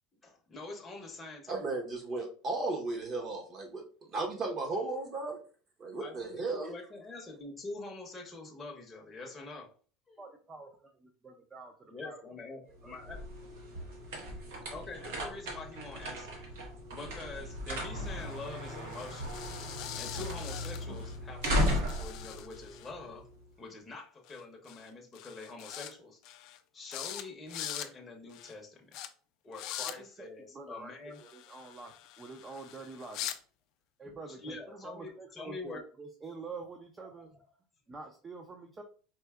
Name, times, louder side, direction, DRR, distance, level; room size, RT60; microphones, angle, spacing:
voice 1, 0.2-1.6 6.0-9.7 10.1-10.2 11.9-13.2 14.7-16.4 16.9-19.4 20.0-23.3 23.6-26.4 26.7-29.0 29.4-31.2 34.3-35.8 37.0-37.2, left 3 dB, 15° left, 0.7 m, -45 dB
voice 2, 1.5-5.4 5.8-6.7, right 3 dB, 40° right, 1.0 m, -35 dB
voice 3, 10.2-12.2 12.6-12.9 30.0-33.3 34.0-37.3 37.9-38.8, right 3 dB, 25° right, 0.5 m, -47 dB
sound 1, 12.7-23.4, equal, 85° right, 1.1 m, -36 dB
sound 2, 18.0-21.2 21.4-22.9 24.3-24.4 24.7-24.9 25.2-25.9 26.2-26.6 26.9-27.2 27.5-27.9 28.3-28.5 28.9-29.1 29.5-30.0 31.1-33.4, left 12 dB, 60° left, 0.4 m, -43 dB
4.4 x 2.7 x 2.3 m
supercardioid pair, 120°, 0 cm